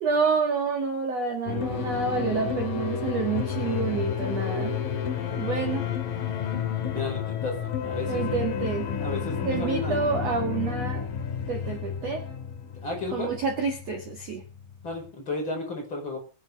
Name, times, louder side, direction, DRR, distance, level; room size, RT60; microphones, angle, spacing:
voice 1, 0.0-4.8 5.3-5.9 8.0-9.1 9.4-11.1 11.5-12.2 13.1-14.4, right 5 dB, 65° right, 4 dB, 1.6 m, -28 dB
sound 1, 1.5-15.1, left 7 dB, 55° left, 3.1 m, -31 dB
voice 2, 6.9-8.3 9.0-10.0 12.8-13.3 14.8-16.2, left 2 dB, 25° left, 1 dB, 5.3 m, -33 dB
23.0 x 10.0 x 3.5 m, 0.33 s
omnidirectional pair, 5.8 m